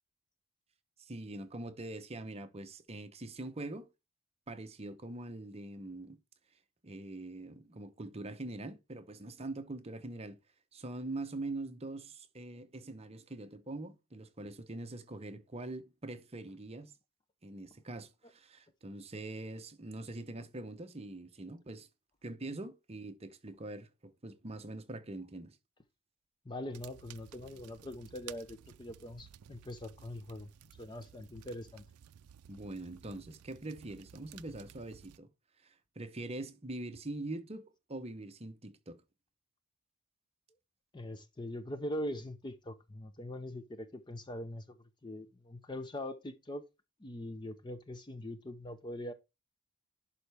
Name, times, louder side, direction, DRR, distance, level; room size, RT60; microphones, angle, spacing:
voice 1, 1.0-3.9 4.5-6.2 6.8-10.4 10.7-16.9 17.4-21.9 22.2-25.6 32.5-35.3 35.6-39.0, right 2 dB, 30° right, 0.8 m, -43 dB
voice 2, 26.5-30.5 30.8-31.8 40.9-44.8 45.0-46.6 47.0-49.1, left 1 dB, 20° left, 0.5 m, -42 dB
sound 1, 26.7-35.2, right 10 dB, 80° right, 0.4 m, -55 dB
11.0 x 4.1 x 3.4 m
head